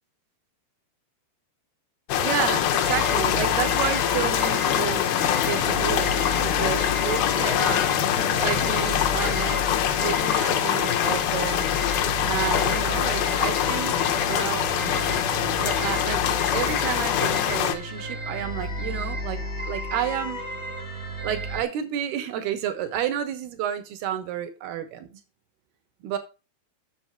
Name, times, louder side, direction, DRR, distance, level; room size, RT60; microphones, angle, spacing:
sound 1, 2.1-17.7, left 10 dB, 75° left, 2.3 m, -24 dB
voice 1, 2.2-15.0 15.4-20.4 21.2-25.2 26.0-26.2, right 10 dB, 70° right, 2.9 m, -31 dB
sound 2, 2.8-21.6, left 1 dB, 30° right, 1.3 m, -33 dB
7.5 x 7.1 x 4.5 m
omnidirectional pair, 5.4 m